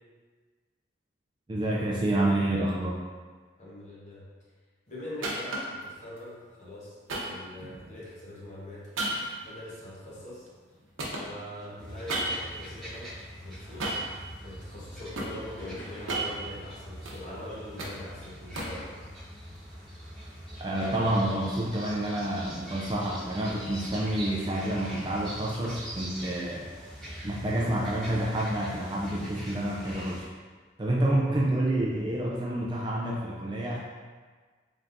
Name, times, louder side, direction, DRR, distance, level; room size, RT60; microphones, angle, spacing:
voice 1, 1.5-3.0 20.6-26.6 27.2-30.3 30.8-33.8, right 1 dB, 25° right, -3 dB, 0.3 m, -28 dB
voice 2, 3.6-4.2 4.9-7.0 7.2-8.8 9.1-9.2 9.5-10.5 11.2-13.1 13.4-14.0 14.4-18.9, left 1 dB, 40° left, -7 dB, 1.1 m, -42 dB
sound 1, 5.2-5.8 7.1-8.1 9.0-10.7 11.0-12.6 13.8-14.2 14.7-15.4 15.9-17.2 17.5-18.9, right 2 dB, 90° right, 0.7 m, -34 dB
sound 2, 11.8-30.2, equal, ahead, 1.1 m, -43 dB
sound 3, 15.6-16.4 17.3-17.4 18.5-19.1 20.0-20.1 20.8-21.6, equal, 70° left, 1.2 m, -45 dB
3.9 x 3.4 x 2.6 m, 1.4 s
head